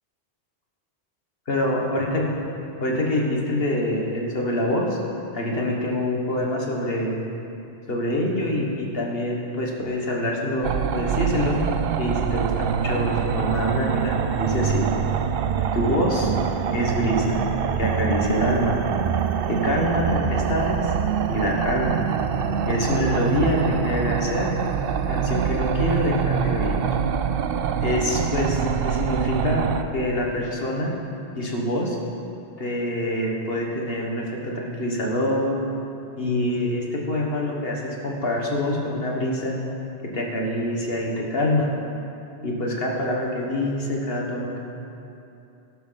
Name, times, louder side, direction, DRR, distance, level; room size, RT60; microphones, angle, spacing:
voice 1, 1.5-2.3 2.8-5.0 5.3-7.2 7.9-11.6 12.0-14.8 15.7-16.3 16.7-17.4 17.8-18.8 19.5-20.9 21.3-22.0 22.7-24.5 25.1-26.8 27.8-29.7 29.9-30.9 31.4-32.0 32.6-35.6 36.2-39.5 40.0-41.7 42.4-44.6, left 1 dB, 60° left, -1 dB, 1.7 m, -25 dB
sound 1, 10.6-29.8, right 7 dB, 65° right, 0.7 m, -25 dB
12.0 x 12.0 x 4.0 m, 2.8 s
omnidirectional pair, 1.1 m